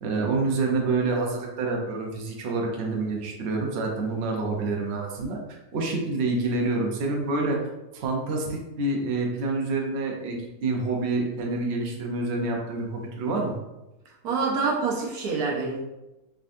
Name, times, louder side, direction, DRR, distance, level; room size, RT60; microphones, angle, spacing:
voice 1, 0.0-5.4 5.7-7.6 7.9-13.6, right 3 dB, 60° right, 0 dB, 0.8 m, -27 dB
voice 2, 14.2-15.8, right 4 dB, 75° right, -2 dB, 1.3 m, -26 dB
3.7 x 3.3 x 2.6 m, 0.98 s
omnidirectional pair, 1.7 m